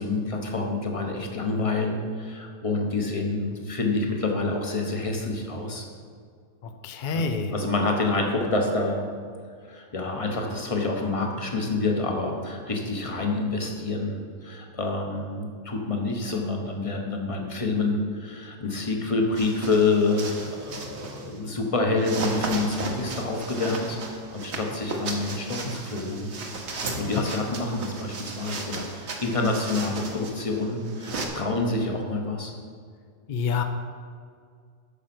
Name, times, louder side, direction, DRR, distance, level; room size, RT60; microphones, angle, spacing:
voice 1, 0.0-5.9 7.1-9.0 9.7-26.3 26.9-32.5, left 3 dB, 30° left, 2 dB, 1.1 m, -27 dB
voice 2, 6.8-7.5 33.3-33.6, left 5 dB, 50° left, 7 dB, 0.6 m, -27 dB
sound 1, 19.3-21.4 22.0-31.3, right 3 dB, 60° right, 1.3 m, -35 dB
8.6 x 6.5 x 6.0 m, 2.1 s
omnidirectional pair, 1.3 m